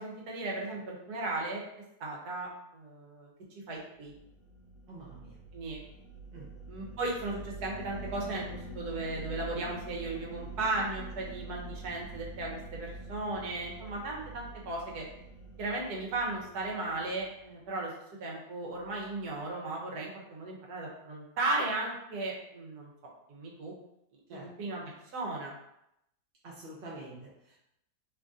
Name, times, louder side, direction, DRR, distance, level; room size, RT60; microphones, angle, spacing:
voice 1, 0.0-1.6 2.0-2.5 2.7-3.3 3.7-4.1 5.5-5.8 6.7-8.4 8.7-15.0 15.6-17.9 18.2-22.9 23.3-23.7 24.3-24.8 25.1-25.5, right 2 dB, 80° right, -2 dB, 1.4 m, -36 dB
sound 1, 4.1-17.6, right 2 dB, 70° left, 1.1 m, -45 dB
voice 2, 4.9-5.3 6.3-6.5 24.3-24.5 26.4-27.6, right 2 dB, 50° right, -6 dB, 0.7 m, -46 dB
3.1 x 2.6 x 3.5 m, 0.82 s
omnidirectional pair, 1.6 m